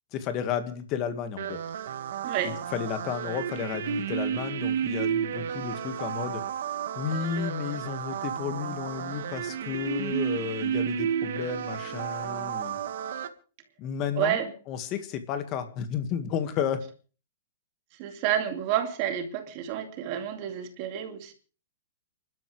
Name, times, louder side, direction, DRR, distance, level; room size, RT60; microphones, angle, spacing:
voice 1, 0.1-1.6 2.4-6.4 7.0-12.8 13.8-14.4 14.7-16.8, left 8 dB, 20° left, 1.8 m, -32 dB
sound 1, 1.4-13.3, right 8 dB, 55° right, 1.8 m, -32 dB
voice 2, 2.2-2.6 14.2-14.5 18.0-21.3, right 10 dB, 30° right, 2.4 m, -29 dB
30.0 x 12.5 x 3.3 m
hypercardioid pair, 175°, 0 cm